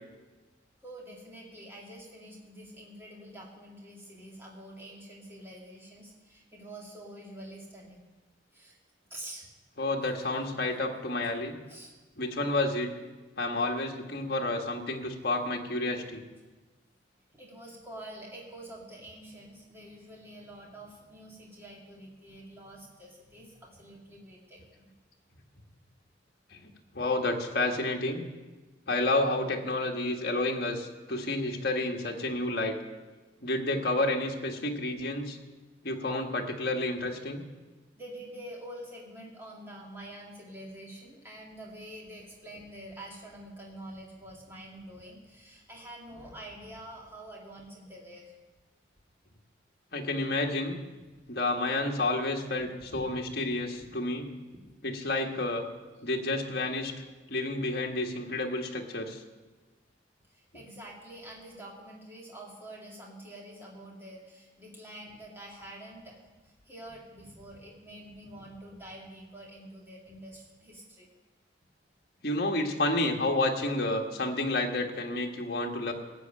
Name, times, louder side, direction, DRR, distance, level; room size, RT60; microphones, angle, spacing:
voice 1, 0.8-8.0 8.5-8.8 9.1-9.4 11.7-11.9 17.3-24.9 38.0-48.3 52.9-53.1 60.3-71.1, right 1 dB, 10° right, -3 dB, 2.2 m, -47 dB
voice 2, 9.8-11.6 12.2-12.9 13.4-16.2 26.5-28.3 28.9-32.8 33.4-35.4 35.8-37.4 49.9-50.8 51.3-54.3 54.8-55.7 56.0-56.9 57.3-59.2 72.2-75.9, left 2 dB, 55° left, 1 dB, 1.5 m, -30 dB
14.5 x 7.4 x 8.8 m, 1.2 s
head